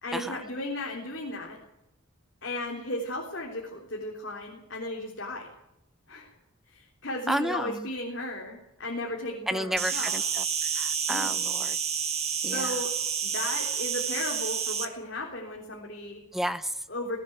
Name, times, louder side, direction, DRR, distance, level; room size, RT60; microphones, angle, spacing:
voice 1, 0.0-1.6 2.4-5.5 6.1-6.3 6.7-10.2 11.1-11.3 12.5-12.9 13.2-16.2 16.9-17.2, left 1 dB, 55° left, -1 dB, 3.6 m, -35 dB
voice 2, 7.3-7.9 9.5-10.4 10.8-11.8 12.4-12.7 16.3-16.7, equal, ahead, 12 dB, 0.7 m, -31 dB
Insect, 9.8-14.9, right 7 dB, 30° right, 1.7 m, -29 dB
18.0 x 18.0 x 8.1 m, 0.85 s
head